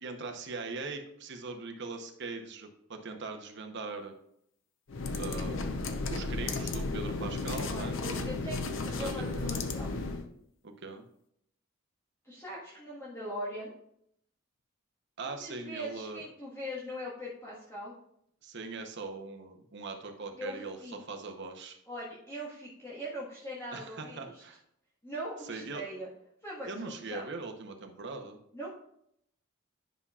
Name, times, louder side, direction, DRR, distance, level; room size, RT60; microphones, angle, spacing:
voice 1, 0.0-4.1 5.2-5.7 6.1-8.4 9.0-9.6 10.6-11.0 15.2-16.2 18.4-21.8 23.7-24.6 25.5-25.8 26.6-28.4, right 3 dB, 60° right, 4 dB, 0.9 m, -41 dB
sound 1, 4.9-10.3, left 3 dB, 65° left, 0.6 m, -34 dB
voice 2, 7.7-9.9 12.2-13.7 15.2-17.9 20.3-21.0 21.9-24.4 25.0-26.1 26.4-27.3 28.5-28.7, equal, 15° left, -7 dB, 1.5 m, -41 dB
10.5 x 5.6 x 2.4 m, 0.73 s
head